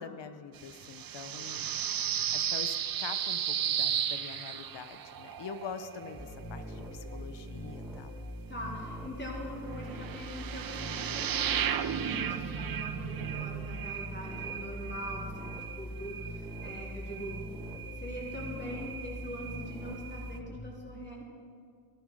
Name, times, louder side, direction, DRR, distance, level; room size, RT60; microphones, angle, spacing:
voice 1, 0.0-1.7 2.3-8.1, left 6 dB, 65° left, 10 dB, 0.9 m, -44 dB
sound 1, 0.6-7.7 9.2-20.4, right 9 dB, 45° right, 0.7 m, -36 dB
sound 2, 6.2-20.6, equal, ahead, 2.0 m, -43 dB
voice 2, 8.5-17.5 17.9-21.2, left 1 dB, 20° left, -3 dB, 4.0 m, -42 dB
13.5 x 11.5 x 4.9 m, 2.3 s
cardioid pair, 60°, 47 cm